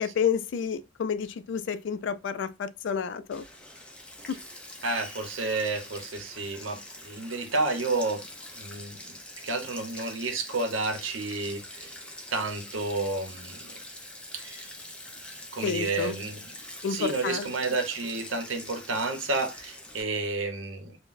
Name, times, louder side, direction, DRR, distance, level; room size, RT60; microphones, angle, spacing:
voice 1, 0.0-3.4 15.6-16.2 16.8-17.5, left 6 dB, 65° left, 0.3 m, -30 dB
Sink (filling or washing), 3.3-20.0, left 1 dB, 5° left, 0.5 m, -44 dB
voice 2, 4.8-8.3 8.5-9.0 9.4-11.9 12.3-13.6 14.3-14.6 15.5-16.4 16.9-21.0, right 3 dB, 85° right, 0.8 m, -30 dB
3.7 x 2.1 x 2.5 m
head